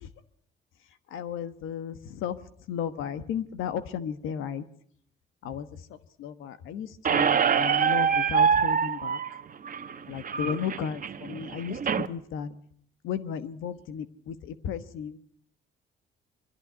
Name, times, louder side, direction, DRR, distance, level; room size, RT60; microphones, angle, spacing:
voice 1, 1.1-2.4 2.7-4.6 5.4-9.2 10.1-12.5 13.0-15.2, left 8 dB, 90° left, 12 dB, 1.3 m, -34 dB
Squeak, 7.0-12.1, right 7 dB, 45° right, 1.2 m, -25 dB
22.0 x 14.0 x 9.4 m, 0.63 s
cardioid pair, 90°, 20 cm